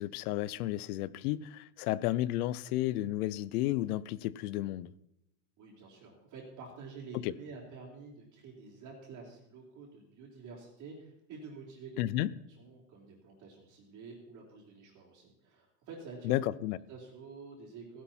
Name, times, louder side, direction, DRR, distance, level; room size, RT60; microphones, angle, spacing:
voice 1, 0.0-4.9 7.2-7.3 12.0-12.3 16.2-16.8, left 15 dB, 70° left, 0.8 m, -32 dB
voice 2, 5.6-12.0 12.6-16.4 16.9-18.0, right 4 dB, 40° right, 3.7 m, -49 dB
16.0 x 11.5 x 4.4 m
supercardioid pair, 145°, 46 cm